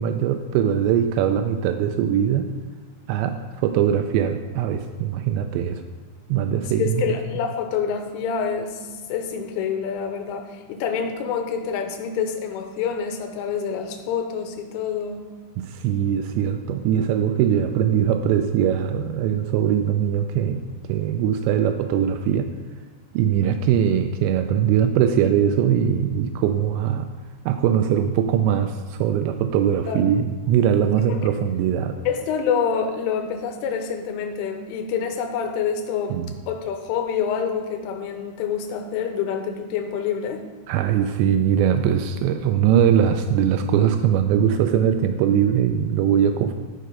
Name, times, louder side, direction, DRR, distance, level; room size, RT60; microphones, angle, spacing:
voice 1, 0.0-2.5 3.1-5.8 6.3-7.2 15.6-22.5 23.1-27.1 27.5-32.0 36.1-36.3 40.7-46.5, right 9 dB, 90° right, 7 dB, 2.5 m, -21 dB
voice 2, 6.8-15.3 23.4-23.6 29.9-30.1 31.1-31.3 32.1-36.2 36.5-40.4, left 7 dB, 85° left, 4 dB, 3.4 m, -27 dB
13.0 x 5.1 x 5.4 m, 1.4 s
omnidirectional pair, 5.6 m